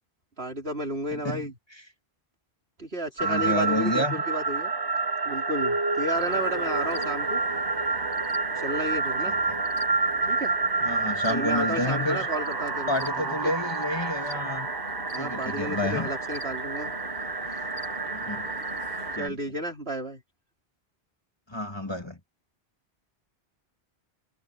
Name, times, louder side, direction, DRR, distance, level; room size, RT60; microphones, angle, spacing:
voice 1, 0.4-1.5 2.8-4.7 5.2-7.4 8.5-9.3 10.3-10.5 11.3-13.5 15.1-16.9 19.1-20.2, right 1 dB, 75° right, 4.7 m, -32 dB
voice 2, 1.1-1.5 3.2-4.2 9.3-9.6 10.8-12.3 12.9-14.7 15.2-16.1 18.1-18.5 19.2-19.4 21.5-22.2, left 1 dB, 25° left, 2.3 m, -30 dB
sound 1, 3.2-19.3, right 3 dB, 25° right, 0.7 m, -29 dB
sound 2, 6.1-19.2, left 2 dB, 60° left, 4.3 m, -43 dB
omnidirectional pair, 1.1 m